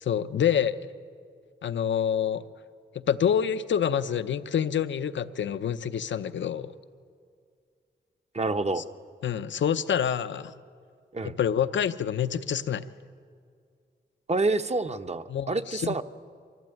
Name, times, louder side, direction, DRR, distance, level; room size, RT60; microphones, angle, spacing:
voice 1, 0.0-0.8 1.6-2.4 3.1-6.7 8.8-8.9 9.2-10.5 11.2-12.8 15.3-16.0, left 8 dB, 75° left, 12 dB, 0.7 m, -27 dB
voice 2, 8.3-8.9 11.1-11.4 14.3-16.0, right 3 dB, 35° right, 9 dB, 0.9 m, -28 dB
24.0 x 15.0 x 9.0 m, 2.2 s
cardioid pair, 55°, 19 cm